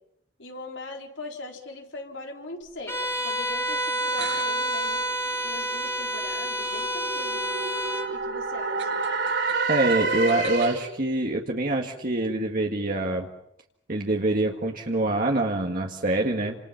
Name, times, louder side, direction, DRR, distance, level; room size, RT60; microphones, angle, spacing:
voice 1, 0.4-5.0 5.4-7.4 8.1-9.0, left 2 dB, 80° left, 2 dB, 4.3 m, -40 dB
Bowed string instrument, 2.9-8.2, right 1 dB, 15° left, 2.0 m, -28 dB
sound 1, 4.1-10.9, right 6 dB, 90° right, 6.8 m, -45 dB
sound 2, 4.9-11.0, right 3 dB, 70° right, 4.2 m, -29 dB
voice 2, 9.7-13.3 13.9-16.6, right 2 dB, 50° right, 1 dB, 2.0 m, -25 dB
29.5 x 27.0 x 5.9 m, 0.77 s
head